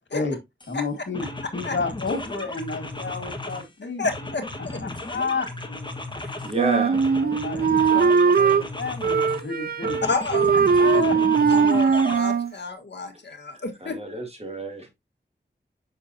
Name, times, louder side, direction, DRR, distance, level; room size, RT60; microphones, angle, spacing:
sound 1, 0.6-0.8 1.1-3.7 4.0-6.6 6.9-9.5 9.8-12.2, left 2 dB, 25° left, 1.3 m, -35 dB
voice 1, 0.7-1.3 1.5-4.1 4.8-5.5 7.2-10.0 10.8-11.2, left 4 dB, 90° left, 1.7 m, -31 dB
voice 2, 4.0-4.8 6.2-6.3 7.5-7.6 10.0-10.5 10.9-11.0 11.5-14.0, left 3 dB, 70° left, 1.4 m, -30 dB
voice 3, 6.4-7.3 12.5-12.6 13.5-14.9, right 2 dB, 35° right, 2.2 m, -31 dB
Wind instrument woodwind instrument, 6.6-8.7 9.0-10.1 10.3-12.5, right 6 dB, 55° right, 0.4 m, -20 dB
6.6 x 6.0 x 2.7 m
wide cardioid pair, 75°, 19 cm